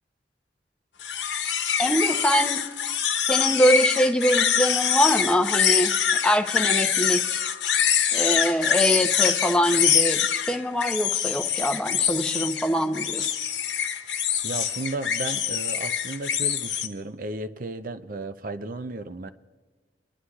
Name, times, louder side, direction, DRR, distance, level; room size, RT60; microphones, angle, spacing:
sound 1, 1.0-16.9, left 8 dB, 90° left, 1.0 m, -24 dB
voice 1, 1.8-2.6 3.3-6.0 6.2-7.4 8.1-13.3, equal, 5° left, 5 dB, 0.7 m, -24 dB
voice 2, 14.1-19.3, right 2 dB, 50° right, 11 dB, 0.6 m, -34 dB
25.0 x 11.5 x 2.4 m, 1.4 s
head